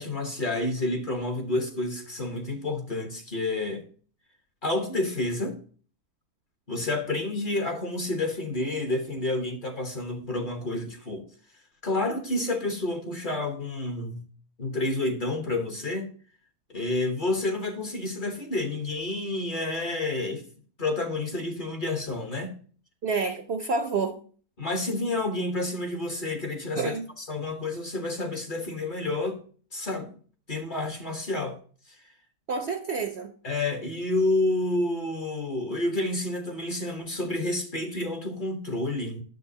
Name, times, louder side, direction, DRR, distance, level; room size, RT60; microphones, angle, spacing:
voice 1, 0.0-3.8 4.6-5.6 6.7-11.2 11.8-14.2 14.6-16.1 16.7-20.4 20.8-22.6 24.6-29.4 29.7-30.1 30.5-31.6 33.4-39.2, left 2 dB, 35° left, 1.2 m, -29 dB
voice 2, 23.0-24.2 26.8-27.1 32.5-33.3, right 4 dB, 55° right, 0.8 m, -28 dB
9.4 x 7.2 x 2.8 m
omnidirectional pair, 1.6 m